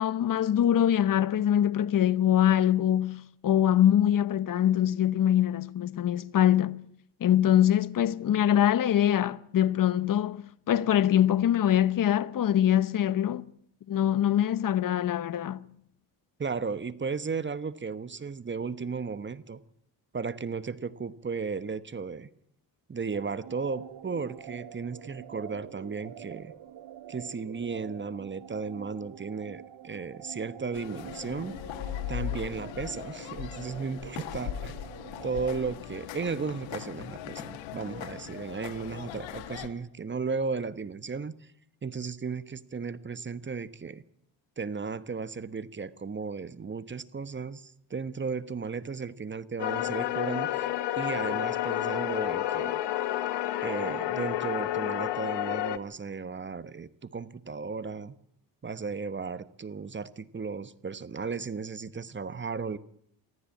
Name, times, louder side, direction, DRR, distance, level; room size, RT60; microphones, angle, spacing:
voice 1, 0.0-6.8 7.2-13.4 13.9-15.7, left 11 dB, 45° left, 1.0 m, -24 dB
voice 2, 16.4-19.6 20.1-22.3 22.9-26.5 27.1-31.6 32.1-34.8 35.2-41.5 41.8-44.0 44.6-52.8 53.6-58.2 58.6-62.8, right 5 dB, 25° right, 1.1 m, -35 dB
sound 1, 23.1-35.6, right 10 dB, 65° right, 1.4 m, -46 dB
sound 2, 30.7-39.7, left 11 dB, 90° left, 2.0 m, -39 dB
sound 3, 49.6-55.8, left 13 dB, 70° left, 1.5 m, -30 dB
23.5 x 14.5 x 8.5 m
cardioid pair, 90°, 44 cm